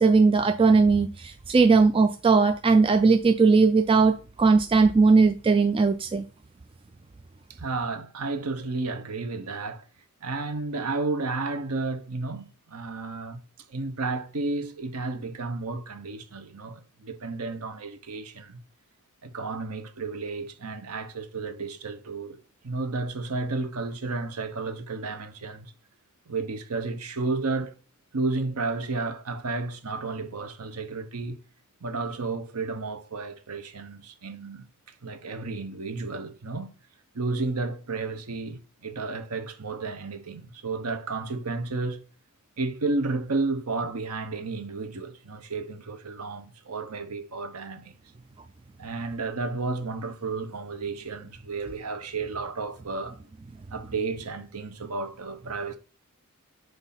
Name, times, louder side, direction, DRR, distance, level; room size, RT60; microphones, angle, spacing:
voice 1, 0.0-6.2, right 4 dB, 25° right, 0.3 m, -19 dB
voice 2, 7.5-9.8 10.2-13.4 13.7-18.6 19.2-25.7 26.3-27.7 28.1-31.4 31.8-34.7 35.0-36.7 37.1-42.0 42.6-47.9 48.8-53.3 53.7-55.8, right 3 dB, 85° right, 0.9 m, -32 dB
7.9 x 2.7 x 5.7 m
head